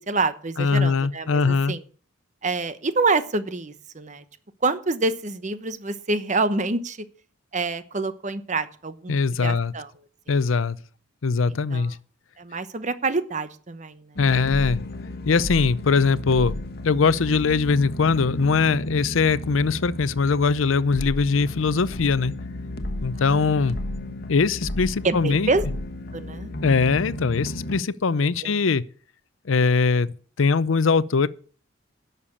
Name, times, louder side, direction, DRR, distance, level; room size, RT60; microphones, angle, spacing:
voice 1, 0.0-1.8 2.4-4.2 4.6-7.0 7.5-9.1 9.4-9.9 11.5-11.9 12.4-14.2 23.1-23.7 24.1-24.2 25.0-25.6 26.1-26.5 28.4-28.6, right 3 dB, 40° right, 0.9 m, -27 dB
voice 2, 0.6-1.7 9.1-9.7 10.3-10.8 11.2-12.0 14.2-14.8 15.3-16.6 16.8-22.3 23.0-23.8 24.3-25.5 26.6-28.8 29.5-31.3, left 4 dB, 85° left, 0.6 m, -21 dB
sound 1, 14.1-27.8, left 1 dB, 50° left, 1.3 m, -33 dB
11.0 x 6.8 x 8.6 m
head